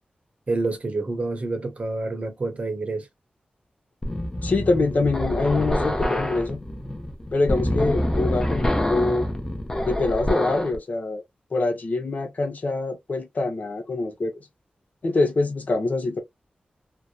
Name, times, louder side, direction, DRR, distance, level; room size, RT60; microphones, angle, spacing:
voice 1, 0.5-3.1, right 3 dB, 45° right, 0.8 m, -28 dB
sound 1, 4.0-10.8, left 1 dB, 20° left, 0.6 m, -26 dB
voice 2, 4.4-6.6 7.3-9.3 9.8-11.2 11.5-14.5 15.0-16.2, left 3 dB, 60° left, 0.8 m, -24 dB
2.8 x 2.1 x 2.3 m
wide cardioid pair, 80°, 3 cm